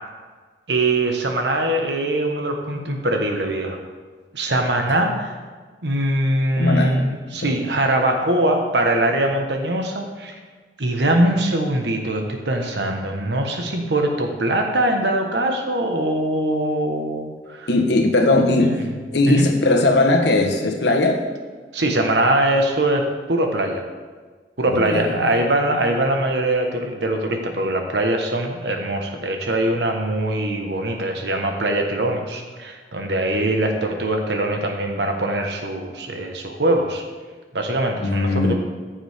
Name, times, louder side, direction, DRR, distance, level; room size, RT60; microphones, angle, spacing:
voice 1, 0.7-3.8 4.3-5.4 5.8-10.3 10.8-17.7 18.6-18.7 19.3-19.5 21.7-23.8 24.6-37.0 37.5-38.5, right 1 dB, 75° right, 3 dB, 1.3 m, -22 dB
voice 2, 6.5-7.0 7.4-7.5 17.7-18.8 19.1-21.2 24.7-25.4 38.0-38.5, left 2 dB, 75° left, 3 dB, 1.3 m, -19 dB
14.5 x 7.2 x 3.6 m, 1.4 s
head